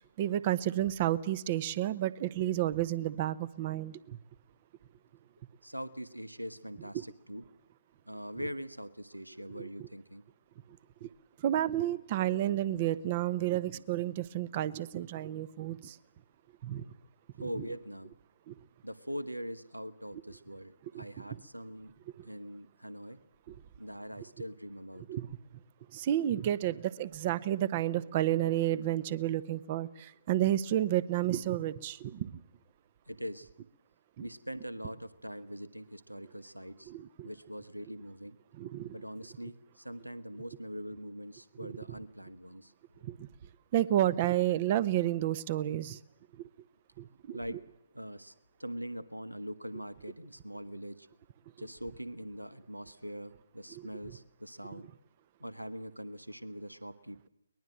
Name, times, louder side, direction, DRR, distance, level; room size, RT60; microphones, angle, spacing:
voice 1, 0.0-4.2 9.6-9.7 11.0-11.1 11.4-16.0 16.6-16.8 18.5-18.6 20.9-21.0 22.2-22.3 25.1-25.3 25.9-32.3 36.9-37.3 38.6-39.0 43.0-43.3 43.7-46.0 47.0-47.4, right 13 dB, 30° right, 20 dB, 1.0 m, -31 dB
voice 2, 5.6-7.4 8.1-10.2 16.8-17.0 17.4-18.1 18.8-21.9 22.2-23.2 23.8-25.1 33.1-33.5 34.2-36.9 37.2-38.4 38.9-42.7 47.3-48.3 48.6-51.1 51.6-54.9 55.4-57.3, equal, 85° right, 16 dB, 1.3 m, -42 dB
23.0 x 21.0 x 7.7 m, 0.81 s
figure-of-eight pair, 135°, 0 cm